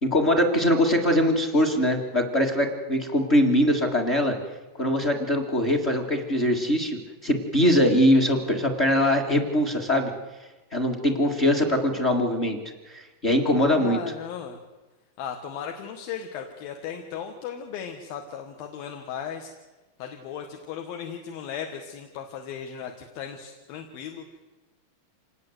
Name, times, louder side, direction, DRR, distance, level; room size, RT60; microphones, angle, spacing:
voice 1, 0.0-4.3 4.8-10.1 10.7-12.6 12.9-14.0, equal, 30° left, 3 dB, 1.2 m, -22 dB
voice 2, 13.7-14.6 15.2-19.5 20.0-24.4, left 8 dB, 80° left, 4 dB, 3.3 m, -36 dB
26.5 x 19.5 x 7.9 m, 1.1 s
omnidirectional pair, 4.2 m